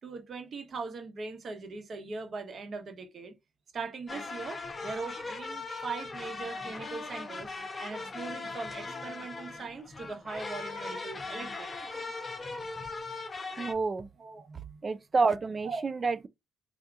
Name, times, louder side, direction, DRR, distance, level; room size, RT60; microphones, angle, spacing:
voice 1, 0.0-3.3 3.7-7.5 7.8-11.7 14.2-14.8 15.6-15.8, right 4 dB, 50° right, 1.0 m, -40 dB
sound 1, 4.1-13.7, left 3 dB, 30° left, 0.7 m, -39 dB
voice 2, 13.6-14.1 14.8-16.3, right 4 dB, 35° right, 0.4 m, -28 dB
3.5 x 2.8 x 2.4 m
cardioid pair, 90°, 0 cm